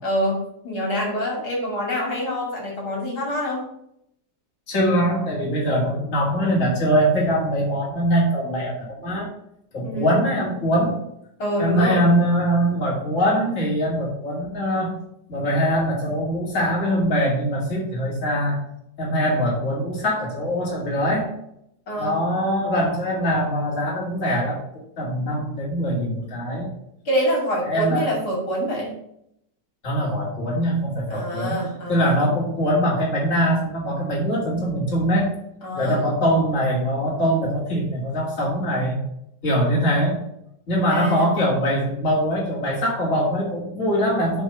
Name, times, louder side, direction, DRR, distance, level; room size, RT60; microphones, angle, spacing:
voice 1, 0.0-3.7 9.8-10.2 11.4-12.0 21.9-22.2 27.0-28.9 31.1-32.2 35.6-36.1 40.9-41.3, equal, 70° left, -2 dB, 2.9 m, -26 dB
voice 2, 4.7-9.3 9.7-11.0 11.6-15.0 15.3-18.6 19.0-21.3 22.0-26.7 27.6-28.1 29.8-31.6 31.9-35.3 35.7-39.0 39.4-40.2 40.7-44.4, equal, 50° left, -4 dB, 2.4 m, -22 dB
7.9 x 3.7 x 6.7 m, 0.75 s
omnidirectional pair, 1.8 m